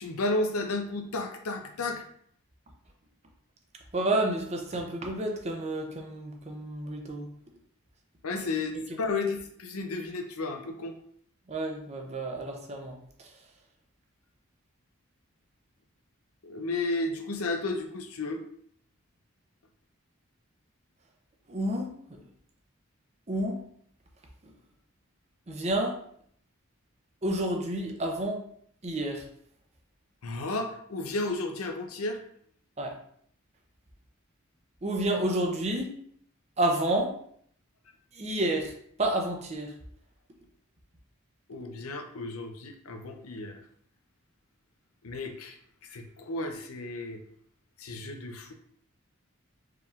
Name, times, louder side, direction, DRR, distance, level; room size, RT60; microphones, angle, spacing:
voice 1, 0.0-2.0 8.2-10.9 16.4-18.4 30.2-32.2 41.5-43.6 45.0-45.6 45.8-47.2 47.8-48.5, left 2 dB, 85° left, 4 dB, 0.6 m, -33 dB
voice 2, 3.9-7.3 8.7-8.8 11.5-13.3 21.5-22.2 23.3-23.6 24.4-24.5 25.5-26.0 27.2-28.4 28.8-29.2 32.8-33.0 34.8-35.9 36.6-37.1 38.1-38.7 39.0-39.7, right 1 dB, 30° right, 2 dB, 0.6 m, -30 dB
4.8 x 3.5 x 2.4 m, 0.63 s
head